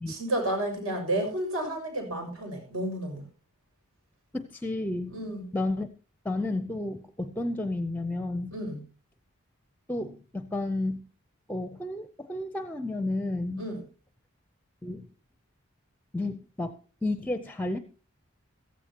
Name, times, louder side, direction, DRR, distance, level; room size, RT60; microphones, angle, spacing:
voice 1, 0.1-3.2 5.1-5.5 8.5-8.8 13.6-13.8, right 1 dB, 70° right, 3 dB, 6.4 m, -31 dB
voice 2, 4.3-5.1 5.5-5.9 6.2-8.6 9.9-11.0 11.5-13.6 14.8-15.1 16.1-16.7 17.0-17.8, left 2 dB, 10° left, 9 dB, 0.6 m, -31 dB
15.5 x 15.0 x 2.9 m, 0.35 s
head